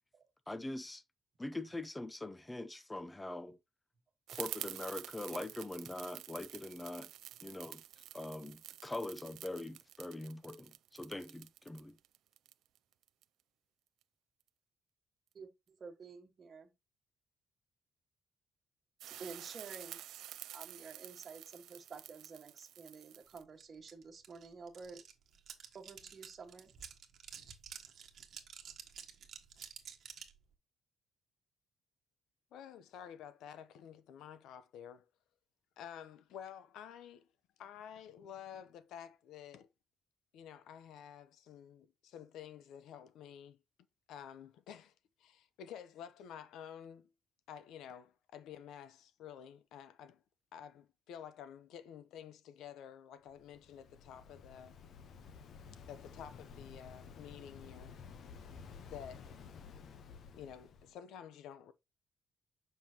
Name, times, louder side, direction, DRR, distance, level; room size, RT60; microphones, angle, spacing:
voice 1, 0.5-1.0 1.4-3.6 4.3-7.1 7.4-7.8 8.1-12.0, left 2 dB, 10° left, 0.6 m, -43 dB
sound 1, 4.3-13.2 19.0-23.4, right 13 dB, 85° right, 0.3 m, -49 dB
voice 2, 15.3-16.7 19.1-20.0 20.5-25.0 25.7-26.7, right 5 dB, 35° right, 1.5 m, -50 dB
sound 2, 23.6-23.7 23.9-30.4, right 8 dB, 55° right, 1.3 m, -51 dB
voice 3, 32.5-35.0 35.8-37.3 37.6-39.7 40.3-43.6 44.1-47.1 47.5-50.2 50.5-54.8 55.7-58.0 58.9-59.3 60.3-61.7, left 9 dB, 85° left, 0.8 m, -51 dB
Waves surf, 53.3-60.9, left 6 dB, 55° left, 0.8 m, -53 dB
7.1 x 5.6 x 2.9 m
cardioid pair, 145°, 0 cm